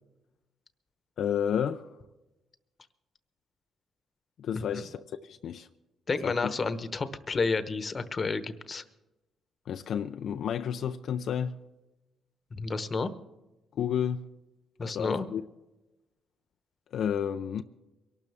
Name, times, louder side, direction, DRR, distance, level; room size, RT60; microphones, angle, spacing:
voice 1, 1.2-1.9 4.4-5.7 6.2-6.5 9.7-11.6 13.8-14.2 14.8-15.4 16.9-17.6, left 8 dB, 65° left, 0.5 m, -31 dB
voice 2, 6.1-8.8 12.6-13.1 14.8-15.3, left 4 dB, 35° left, 1.0 m, -30 dB
23.5 x 12.5 x 3.5 m
cardioid pair, 90°, 0 cm